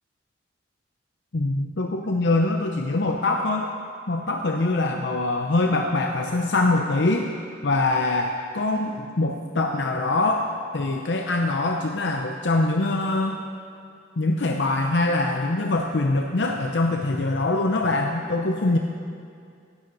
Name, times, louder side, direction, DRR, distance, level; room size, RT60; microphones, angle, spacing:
voice 1, 1.3-3.7 4.1-7.3 7.6-10.5 10.7-13.4 14.2-18.8, left 2 dB, 80° left, 3 dB, 0.7 m, -23 dB
18.0 x 13.0 x 4.0 m, 2.4 s
head